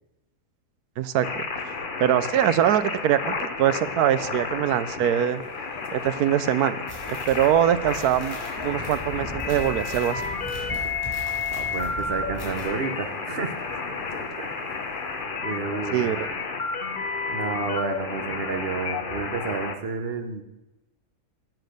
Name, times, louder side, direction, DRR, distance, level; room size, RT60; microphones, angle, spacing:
voice 1, 1.0-1.4 2.0-5.4 5.9-6.8 7.1-10.2 15.9-16.3, right 10 dB, 80° right, 14 dB, 1.1 m, -23 dB
sound 1, 1.2-19.7, left 4 dB, 40° left, 0.9 m, -31 dB
sound 2, 5.3-15.2, left 6 dB, 75° left, 1.7 m, -50 dB
sound 3, 6.9-12.6, equal, 15° left, 4.1 m, -39 dB
voice 2, 10.7-13.9 14.4-14.7 15.1-16.1 17.3-20.4, right 5 dB, 45° right, 7 dB, 1.1 m, -32 dB
10.5 x 8.3 x 6.6 m, 1.0 s
omnidirectional pair, 1.6 m